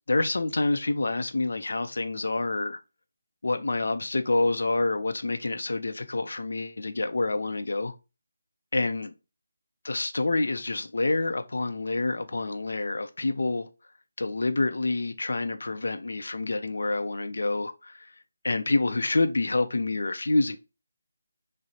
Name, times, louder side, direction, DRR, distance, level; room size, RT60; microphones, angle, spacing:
voice 1, 0.1-2.8 3.4-7.9 8.7-9.1 9.8-13.7 14.2-18.1 18.4-20.6, left 2 dB, 70° left, 0.4 m, -27 dB
6.0 x 2.0 x 2.8 m
figure-of-eight pair, 160°, 0 cm